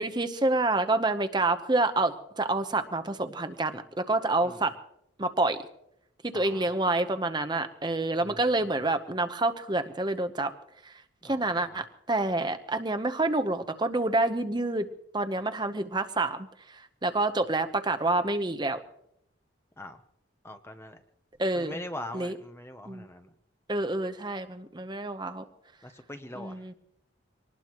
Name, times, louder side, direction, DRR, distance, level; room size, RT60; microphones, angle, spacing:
voice 1, 0.0-4.7 5.2-5.6 6.2-10.5 10.9-11.0 11.2-14.9 15.1-16.4 17.0-18.8 21.4-21.8 22.1-22.4 22.9-23.1 23.7-25.4 26.3-26.7, right 2 dB, 20° right, 9 dB, 0.8 m, -28 dB
voice 2, 6.3-6.6 8.3-8.4 11.2-11.5 11.7-11.8 19.8-20.0 20.4-21.0 21.5-23.3 25.8-26.6, left 1 dB, 10° left, 7 dB, 0.7 m, -42 dB
24.5 x 19.5 x 3.0 m, 0.77 s
head